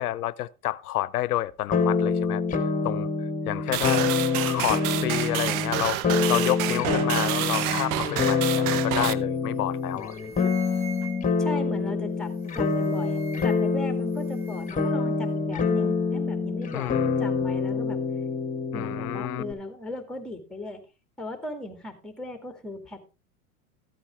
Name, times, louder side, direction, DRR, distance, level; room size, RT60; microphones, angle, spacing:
voice 1, 0.0-2.4 2.8-3.1 3.5-4.0 4.4-6.0 6.3-10.2 16.7-17.2 18.7-19.4, left 14 dB, 85° left, 0.6 m, -29 dB
sound 1, 1.7-19.5, left 4 dB, 20° left, 1.6 m, -26 dB
sound 2, 3.7-9.1, right 12 dB, 45° right, 0.8 m, -29 dB
sound 3, 9.3-9.6 9.9-11.5 12.3-13.8 14.1-14.9, right 6 dB, 20° right, 3.4 m, -45 dB
voice 2, 11.4-18.0 18.6-20.8 21.2-23.1, left 1 dB, ahead, 2.2 m, -38 dB
14.0 x 8.6 x 3.5 m
hypercardioid pair, 105°, 44 cm